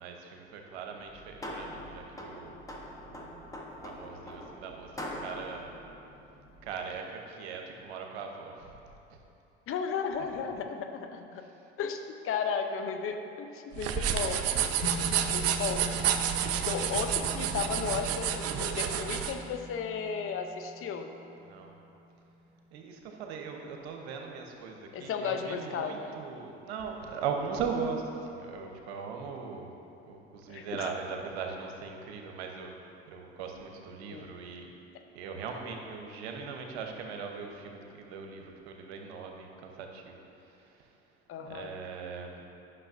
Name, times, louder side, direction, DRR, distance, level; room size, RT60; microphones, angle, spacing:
voice 1, 0.0-2.6 3.0-3.5 3.8-5.7 6.6-8.7 21.4-21.7 22.7-29.7 30.1-32.8 33.1-34.7 35.1-40.2 40.8-40.9 41.4-42.4, right 5 dB, 85° right, 3 dB, 0.8 m, -39 dB
sound 1, 1.0-6.8, left 1 dB, 10° left, 0.9 m, -43 dB
voice 2, 9.7-11.5 11.8-14.5 15.3-15.9 16.6-21.1 24.9-26.1 30.5-30.9 34.1-34.3 41.3-41.7, left 6 dB, 45° left, 6 dB, 0.6 m, -34 dB
sound 2, 13.7-19.3, right 9 dB, 50° right, 0.6 m, -30 dB
sound 3, 14.8-23.3, left 1 dB, 75° left, 1.0 m, -42 dB
10.0 x 6.0 x 2.6 m, 2.9 s
hypercardioid pair, 80°, 32 cm